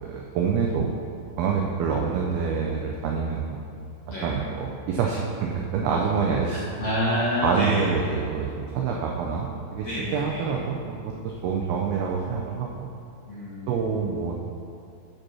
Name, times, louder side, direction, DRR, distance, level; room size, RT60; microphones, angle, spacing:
voice 1, 0.0-1.0 1.4-3.6 4.2-6.6 7.4-12.9 13.7-14.4, right 6 dB, 85° right, -1 dB, 2.2 m, -27 dB
voice 2, 6.5-7.8 9.8-10.4 13.3-13.7, equal, 60° left, -9 dB, 1.9 m, -27 dB
8.7 x 5.2 x 6.2 m, 2.5 s
omnidirectional pair, 5.2 m